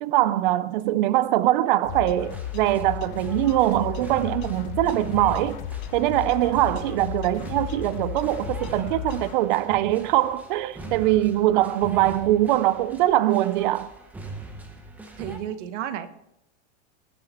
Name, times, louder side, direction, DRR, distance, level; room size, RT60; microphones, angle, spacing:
voice 1, 0.0-5.6 5.9-13.9, right 14 dB, 45° right, 0.4 m, -22 dB
sound 1, 1.8-9.3, left 11 dB, 40° left, 0.7 m, -34 dB
sound 2, 2.2-15.4, right 2 dB, 5° right, 0.8 m, -42 dB
voice 2, 15.2-16.1, right 10 dB, 75° right, 1.2 m, -33 dB
19.5 x 7.2 x 4.2 m
supercardioid pair, 175°, 36 cm